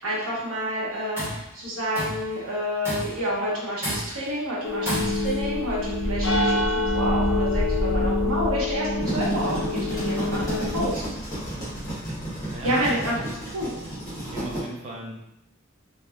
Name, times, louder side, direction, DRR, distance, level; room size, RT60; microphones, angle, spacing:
voice 1, 0.0-11.0 12.6-13.2 13.5-13.7, equal, 80° right, -6 dB, 1.1 m, -29 dB
Tools, 0.9-1.5 1.9-2.3 2.8-3.3 3.8-4.3 4.9-5.4, equal, 10° right, 0.9 m, -31 dB
sound 1, 4.6-10.9, left 2 dB, 70° left, 0.6 m, -25 dB
sound 2, 8.8-14.6, right 1 dB, 15° left, 1.1 m, -32 dB
voice 2, 12.5-13.2 14.3-15.1, right 2 dB, 30° right, -3 dB, 0.6 m, -37 dB
3.1 x 2.4 x 2.3 m, 0.85 s
head